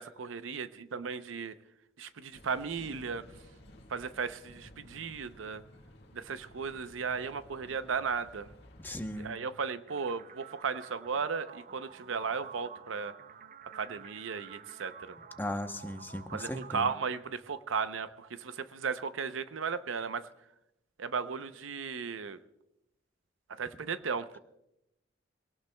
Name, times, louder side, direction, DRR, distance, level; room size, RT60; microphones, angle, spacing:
voice 1, 0.0-1.6 2.0-3.2 3.9-5.6 6.1-8.5 9.2-13.2 13.7-15.1 16.3-20.3 21.0-22.4 23.5-24.3, right 5 dB, 90° right, 12 dB, 0.6 m, -35 dB
sound 1, 2.3-9.3, equal, 60° left, 1.7 m, -55 dB
voice 2, 8.8-9.4 15.4-16.9, left 1 dB, 10° left, 7 dB, 0.8 m, -37 dB
sound 2, 9.9-17.8, right 6 dB, 45° right, 0.6 m, -51 dB
22.5 x 18.0 x 2.2 m, 0.86 s
head